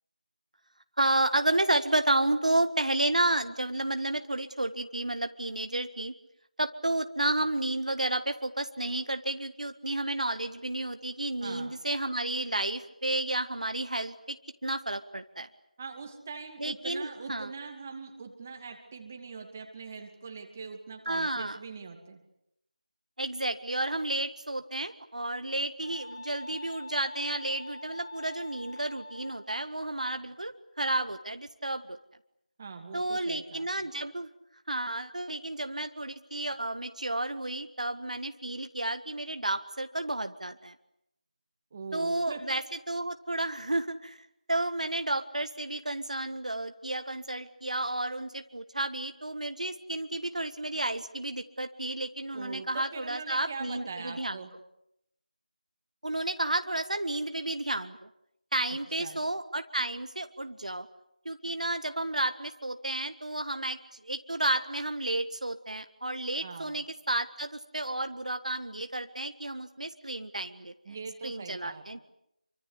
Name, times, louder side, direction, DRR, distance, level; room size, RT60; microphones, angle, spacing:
voice 1, 1.0-6.1 6.6-15.5 16.6-17.5 21.0-21.6 23.2-32.0 32.9-34.3 34.7-40.7 41.9-54.4 56.0-58.1 58.5-60.9 61.2-71.0 71.2-72.0, right 1 dB, 55° right, 8 dB, 1.6 m, -31 dB
voice 2, 11.4-11.7 15.8-22.2 32.6-33.9 41.7-42.4 52.3-54.5 58.7-59.2 66.4-66.8 70.8-72.0, right 4 dB, 15° right, 4 dB, 2.4 m, -42 dB
sound 1, 25.8-29.5, left 2 dB, 30° left, 3.1 m, -44 dB
27.5 x 25.0 x 8.3 m, 0.82 s
figure-of-eight pair, 170°, 5 cm